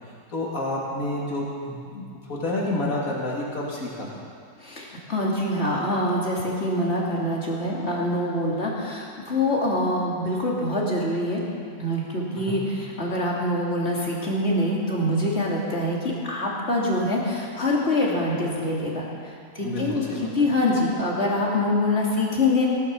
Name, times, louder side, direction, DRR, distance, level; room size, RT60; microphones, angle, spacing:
voice 1, 0.3-4.2 12.3-12.7 19.6-20.5, left 1 dB, 60° left, -4 dB, 3.1 m, -30 dB
voice 2, 4.6-11.4 11.8-16.0 16.3-19.0 19.5-22.7, left 1 dB, 45° left, -4 dB, 2.9 m, -25 dB
18.0 x 11.5 x 6.2 m, 2.2 s
omnidirectional pair, 1.7 m